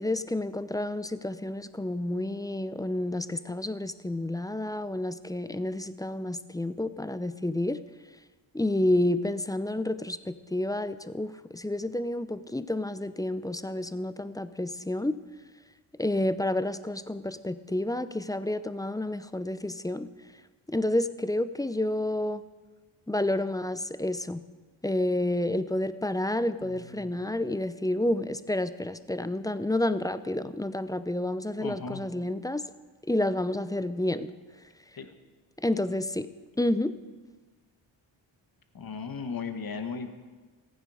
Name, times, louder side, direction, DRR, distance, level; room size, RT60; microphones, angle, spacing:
voice 1, 0.0-7.8 8.5-15.2 16.0-20.1 20.7-22.4 23.1-24.4 24.8-32.6 33.1-34.3 35.6-36.3 36.6-36.9, left 1 dB, 10° left, 13 dB, 0.6 m, -29 dB
voice 2, 26.6-27.2 31.6-32.0 35.0-35.1 38.7-40.1, left 5 dB, 45° left, 7 dB, 1.5 m, -37 dB
15.0 x 9.3 x 4.9 m, 1.3 s
supercardioid pair, 50°, 47 cm